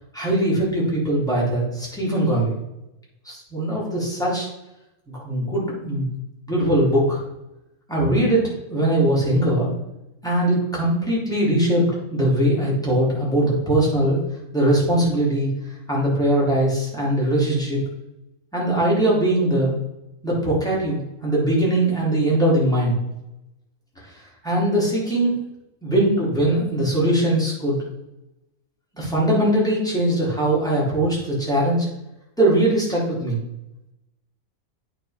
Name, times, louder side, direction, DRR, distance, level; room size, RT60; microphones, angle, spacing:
voice 1, 0.1-2.5 3.2-4.5 5.1-6.1 6.5-7.2 7.9-9.7 10.2-14.2 14.5-15.5 15.9-17.8 18.5-19.8 20.2-22.9 24.4-25.4 25.8-27.8 28.9-31.9 32.4-33.4, right 1 dB, ahead, -6 dB, 3.2 m, -21 dB
9.0 x 4.6 x 5.1 m, 0.89 s
omnidirectional pair, 1.5 m